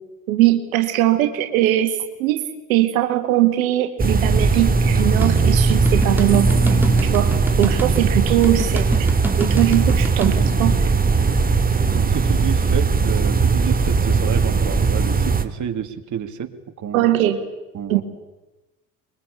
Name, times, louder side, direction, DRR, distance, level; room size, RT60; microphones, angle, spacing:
voice 1, 0.3-9.1 9.3-10.9 16.9-17.4 17.9-18.0, right 14 dB, 85° right, 7 dB, 2.0 m, -20 dB
sound 1, 4.0-15.5, right 4 dB, 20° right, 2.2 m, -18 dB
sound 2, 5.2-10.4, right 2 dB, 5° right, 3.4 m, -29 dB
voice 2, 11.9-16.5 16.8-17.0 17.7-18.0, right 9 dB, 45° right, 7 dB, 2.6 m, -30 dB
24.0 x 22.5 x 8.4 m, 1.1 s
hypercardioid pair, 70°, 41 cm